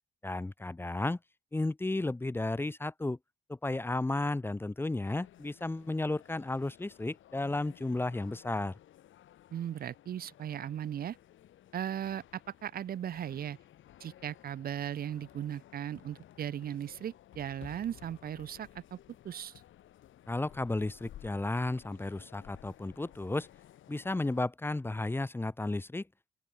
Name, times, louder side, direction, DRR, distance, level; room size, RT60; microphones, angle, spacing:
voice 1, 0.2-1.2 1.5-3.2 3.5-8.8 20.3-23.5 23.9-26.1, left 2 dB, 10° left, 0.7 m, -33 dB
sound 1, 5.0-24.5, left 12 dB, 75° left, 5.5 m, -56 dB
voice 2, 9.5-11.2 11.7-13.6 14.0-19.0 19.2-19.5, right 10 dB, 50° right, 0.5 m, -37 dB
open air
cardioid pair, 90°, 20 cm